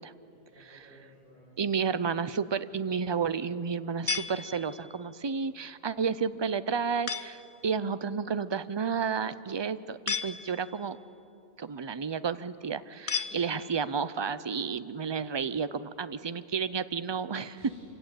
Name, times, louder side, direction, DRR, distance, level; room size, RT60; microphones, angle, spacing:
voice 1, 0.3-1.8 13.1-13.5 17.6-17.8, equal, 55° right, -7 dB, 5.8 m, -54 dB
voice 2, 1.6-11.0 11.6-17.6, right 6 dB, 35° right, 14 dB, 0.5 m, -31 dB
sound 1, 4.1-5.0 7.1-7.6 10.1-10.9 13.1-14.0, left 5 dB, 35° left, 0.6 m, -35 dB
26.5 x 16.5 x 8.9 m, 2.7 s
omnidirectional pair, 1.1 m